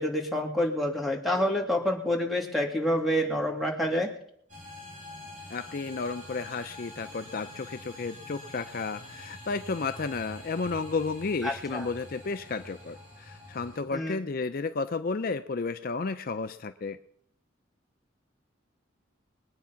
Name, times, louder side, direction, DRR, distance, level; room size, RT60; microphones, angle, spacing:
voice 1, 0.0-4.1 11.4-11.9 13.9-14.2, equal, ahead, 1 dB, 2.6 m, -28 dB
sound 1, 4.5-13.8, left 1 dB, 40° right, 6.4 m, -46 dB
voice 2, 5.5-17.0, left 4 dB, 50° left, 9 dB, 0.5 m, -32 dB
22.0 x 9.4 x 5.8 m, 0.65 s
head